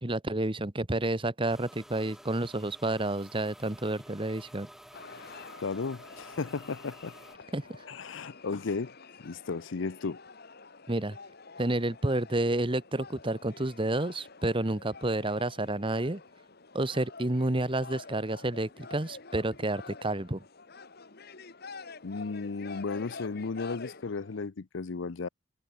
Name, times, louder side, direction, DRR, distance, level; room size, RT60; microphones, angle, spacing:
voice 1, 0.0-4.7 7.5-7.8 10.9-11.2 11.6-16.2 16.7-20.4, right 1 dB, 25° right, 1.4 m, -30 dB
sound 1, 1.5-7.4, equal, ahead, 2.3 m, -52 dB
sound 2, 4.9-24.5, left 4 dB, 55° left, 1.9 m, -48 dB
voice 2, 5.6-7.1 7.9-8.9 9.2-10.2 22.0-25.3, left 4 dB, 70° left, 0.6 m, -34 dB
head